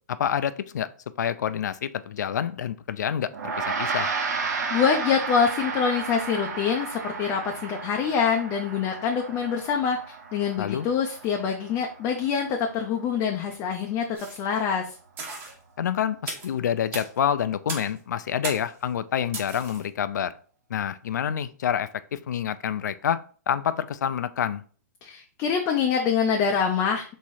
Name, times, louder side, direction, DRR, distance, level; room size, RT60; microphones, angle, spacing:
voice 1, 0.1-0.9 1.2-3.3 3.6-4.1 10.6-10.9 15.8-20.3 20.7-23.2 23.5-24.6, left 9 dB, 85° left, 13 dB, 0.4 m, -27 dB
Gong, 3.3-13.0, right 5 dB, 75° right, 0.9 m, -33 dB
voice 2, 4.5-10.0 10.3-15.0 25.0-27.1, left 6 dB, 25° left, 3 dB, 0.4 m, -25 dB
sound 1, 14.1-14.5 15.2-15.6 16.3-16.5 16.9-17.1 17.7-18.0 18.4-18.8 19.3-19.8, right 3 dB, 20° right, 1.0 m, -35 dB
3.5 x 3.1 x 4.2 m, 0.42 s
hypercardioid pair, 160°, 9 cm